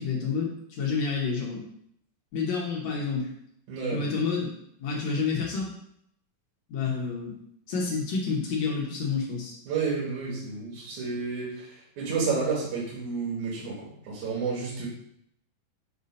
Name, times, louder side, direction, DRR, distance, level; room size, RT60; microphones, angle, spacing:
voice 1, 0.0-1.7 2.3-3.3 3.9-4.5 4.8-5.7 6.7-7.4 7.7-9.6 14.8-14.9, left 5 dB, 70° left, -2 dB, 1.7 m, -29 dB
voice 2, 3.7-4.1 9.7-14.9, right 4 dB, 60° right, -5 dB, 2.5 m, -31 dB
7.1 x 2.7 x 5.3 m, 0.73 s
omnidirectional pair, 4.3 m